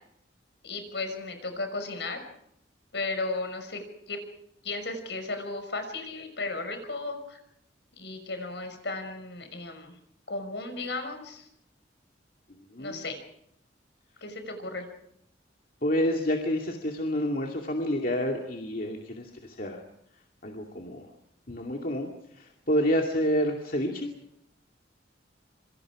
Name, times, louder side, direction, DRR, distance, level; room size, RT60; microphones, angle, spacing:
voice 1, 0.6-2.2 2.9-4.2 4.6-7.4 7.9-9.9 10.3-11.5 12.8-13.2 14.2-14.9, left 3 dB, 65° left, 7 dB, 5.8 m, -35 dB
voice 2, 12.7-13.0 15.8-19.8 20.4-21.1 21.5-22.1 22.4-24.1, equal, 50° left, 1 dB, 2.4 m, -28 dB
27.0 x 25.0 x 4.9 m, 0.76 s
head